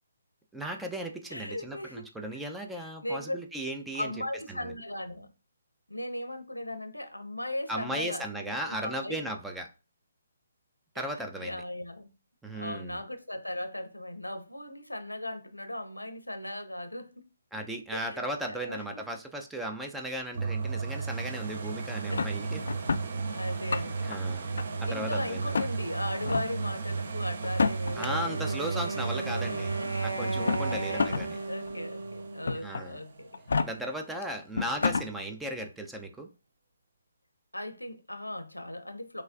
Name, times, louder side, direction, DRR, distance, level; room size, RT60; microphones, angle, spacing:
voice 1, 0.5-4.1 4.5-4.7 7.7-9.7 10.9-11.6 12.4-13.0 17.5-23.1 24.0-24.5 24.8-25.7 27.9-29.7 30.0-31.4 32.5-33.0 33.6-36.3, right 1 dB, 5° right, 0.4 m, -36 dB
voice 2, 1.3-2.4 3.0-3.4 3.9-5.3 5.9-9.2 11.0-11.1 11.4-12.1 12.5-17.3 17.9-19.0 20.3-20.5 21.1-21.3 22.1-22.6 23.3-24.1 24.9-28.5 29.2-30.0 30.4-30.5 30.9-31.1 31.5-33.3 37.5-39.2, left 1 dB, 85° left, 0.7 m, -38 dB
sound 1, 20.3-34.0 34.6-34.7, right 4 dB, 50° right, 0.5 m, -35 dB
sound 2, 22.1-23.1 23.5-24.2 24.6-25.2 25.5-25.7 26.2-26.5 27.4-28.1 29.1-29.2 30.3-31.3 31.7-31.8 32.5-32.8 33.3-33.7 34.2-34.3 34.5-35.1, left 4 dB, 55° left, 0.4 m, -29 dB
Wind instrument woodwind instrument, 27.9-33.0, right 2 dB, 85° right, 0.7 m, -36 dB
6.1 x 2.3 x 2.4 m
figure-of-eight pair, 135°, 0 cm